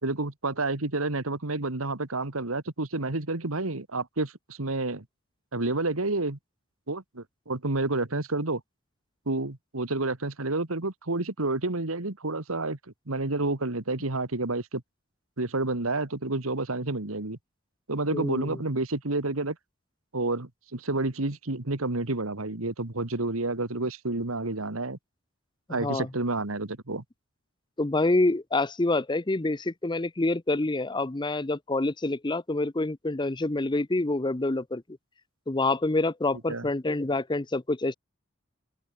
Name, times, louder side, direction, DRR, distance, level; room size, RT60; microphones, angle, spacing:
voice 1, 0.0-5.0 5.5-6.4 6.9-8.6 9.3-12.8 13.1-14.8 15.4-17.4 17.9-19.6 20.1-25.0 25.7-27.0 36.5-36.7, right 2 dB, 80° right, 2.0 m, -29 dB
voice 2, 18.1-18.6 25.8-26.1 27.8-34.8 35.5-37.9, left 2 dB, 20° left, 0.7 m, -27 dB
open air
head